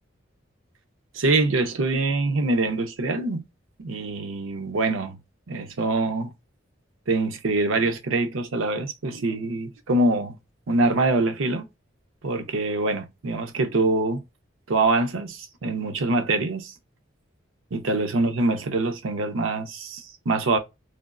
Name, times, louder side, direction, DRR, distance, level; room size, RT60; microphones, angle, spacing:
voice 1, 1.1-3.4 3.8-5.2 5.5-6.3 7.1-10.4 10.7-11.7 12.2-14.2 14.7-16.7 17.7-20.6, right 2 dB, 90° right, 0.6 m, -24 dB
3.3 x 2.3 x 2.4 m
head